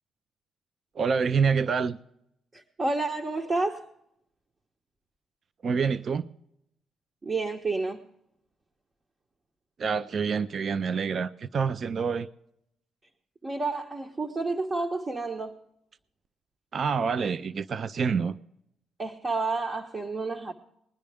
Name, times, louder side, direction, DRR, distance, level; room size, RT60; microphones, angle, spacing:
voice 1, 1.0-2.0 5.6-6.2 9.8-12.3 16.7-18.4, right 5 dB, 50° right, 0.4 m, -27 dB
voice 2, 2.5-3.9 7.2-8.0 13.4-15.6 19.0-20.5, right 3 dB, 30° right, 1.1 m, -30 dB
20.5 x 10.0 x 3.5 m
cardioid pair, 90°, 0 cm